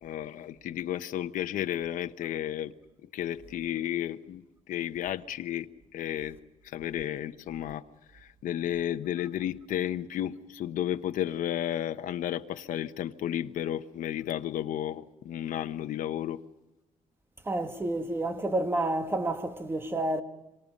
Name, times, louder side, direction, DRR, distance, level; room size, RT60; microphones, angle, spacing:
voice 1, 0.0-2.7 3.1-4.4 4.7-5.7 5.9-6.4 6.6-7.8 8.1-16.4, left 11 dB, 80° left, 1.0 m, -32 dB
voice 2, 17.5-20.2, right 1 dB, 15° right, 1.7 m, -29 dB
26.5 x 26.0 x 5.3 m
cardioid pair, 130°, 14 cm